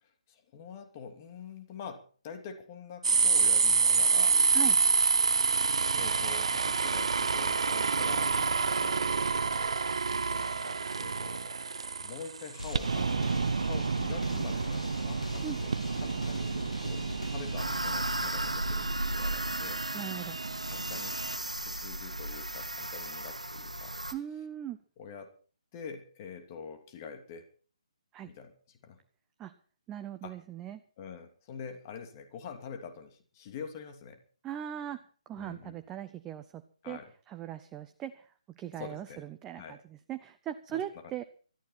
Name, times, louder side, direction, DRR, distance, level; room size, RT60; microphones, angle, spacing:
voice 1, 0.0-4.4 5.2-5.4 5.9-8.4 8.7-9.4 10.3-11.5 12.0-17.0 17.3-19.8 20.7-24.2 25.0-25.3 25.7-27.4 28.2-29.0 30.2-30.3 31.0-34.2 35.4-35.8 36.8-37.1 38.8-39.2 39.5-39.8 40.7-41.0, left 6 dB, 30° left, 5 dB, 2.8 m, -45 dB
sound 1, 3.0-21.4, right 4 dB, 60° right, 1.2 m, -29 dB
sound 2, 12.6-17.6, equal, 85° left, 3.4 m, -39 dB
sound 3, 17.6-24.1, right 1 dB, 85° right, 1.5 m, -35 dB
voice 2, 19.9-20.4 24.1-24.8 28.1-28.3 29.4-29.5 29.9-30.8 34.4-35.0 35.3-37.0 37.3-38.3 38.6-41.2, right 11 dB, 15° right, 9 dB, 0.7 m, -39 dB
20.0 x 13.5 x 4.4 m, 0.42 s
figure-of-eight pair, 140°, 4 cm